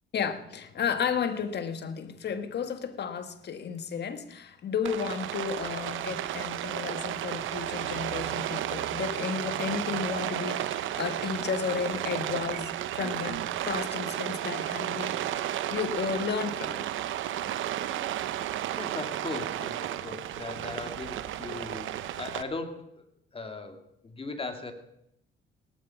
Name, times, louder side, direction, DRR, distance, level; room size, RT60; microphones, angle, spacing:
voice 1, 0.1-15.2 15.7-16.9, left 6 dB, 55° left, 1.6 m, -33 dB
Rain, 4.8-22.4, right 12 dB, 80° right, 0.9 m, -33 dB
voice 2, 18.7-23.0 23.3-24.7, left 3 dB, 30° left, 2.4 m, -38 dB
18.0 x 12.0 x 5.8 m
cardioid pair, 90°, 20 cm